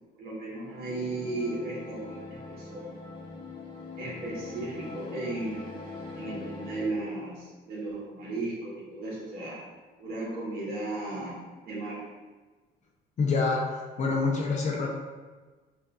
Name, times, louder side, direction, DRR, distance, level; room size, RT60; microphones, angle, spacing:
voice 1, 0.2-2.9 4.0-5.7 6.2-9.6 10.0-11.4 11.6-12.0, right 2 dB, 65° right, -7 dB, 1.4 m, -35 dB
sound 1, 0.6-6.9, left 3 dB, 25° left, 1.0 m, -42 dB
voice 2, 13.2-14.9, left 4 dB, 45° left, -1 dB, 0.7 m, -27 dB
5.3 x 2.6 x 2.4 m, 1.3 s
cardioid pair, 110°, 17 cm